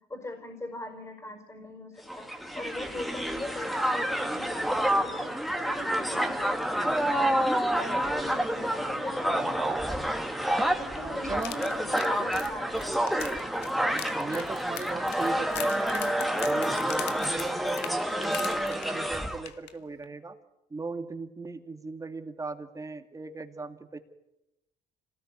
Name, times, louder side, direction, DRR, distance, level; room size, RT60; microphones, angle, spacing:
voice 1, 0.0-5.4 5.6-10.1 10.6-13.0 15.3-15.5 16.4-16.8, left 1 dB, 15° left, 5 dB, 4.8 m, -40 dB
Crowd, 2.1-19.5, right 1 dB, ahead, 2.2 m, -28 dB
voice 2, 11.0-11.6 13.8-16.1 16.5-20.3 20.7-24.0, right 3 dB, 20° right, 7 dB, 2.4 m, -38 dB
sound 1, 11.3-19.1 19.5-19.7 20.0-20.1, left 11 dB, 80° left, 1.9 m, -41 dB
27.0 x 18.5 x 9.7 m, 0.92 s
cardioid pair, 110°, 17 cm